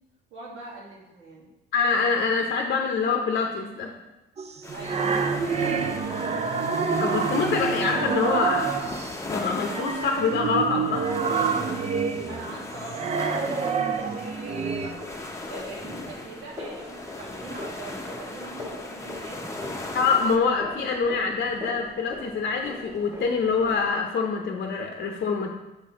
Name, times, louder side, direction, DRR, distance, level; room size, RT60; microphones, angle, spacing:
voice 1, 0.3-1.5 4.7-5.7 12.0-19.5 21.0-21.1, right 2 dB, 80° right, -5 dB, 1.8 m, -42 dB
voice 2, 1.7-3.9 7.0-8.8 9.3-11.1 19.9-25.5, left 5 dB, 55° left, 2 dB, 0.7 m, -25 dB
sound 1, 4.4-9.2 9.6-14.9, right 5 dB, 35° right, 0.5 m, -27 dB
sound 2, 4.6-20.4, left 2 dB, 15° left, 0.8 m, -38 dB
sound 3, 14.9-23.9, left 2 dB, 15° right, 1.6 m, -41 dB
6.6 x 4.2 x 3.6 m, 1.0 s
cardioid pair, 90°, 20 cm